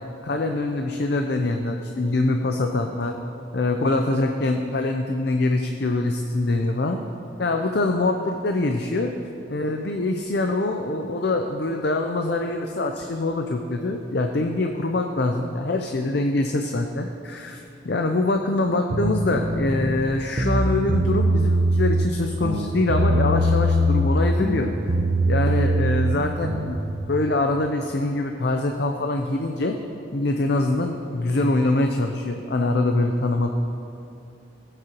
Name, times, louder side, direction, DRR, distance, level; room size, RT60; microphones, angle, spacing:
voice 1, 0.2-3.2 3.5-7.0 7.4-9.1 9.5-24.7 25.3-26.8 27.1-29.8 30.1-33.5, left 2 dB, 55° left, 4 dB, 0.5 m, -24 dB
sound 1, 18.9-20.0 20.3-22.1 22.4-24.1 24.4-26.8, right 1 dB, 45° right, 0.9 m, -22 dB
19.0 x 8.0 x 3.0 m, 2.7 s
head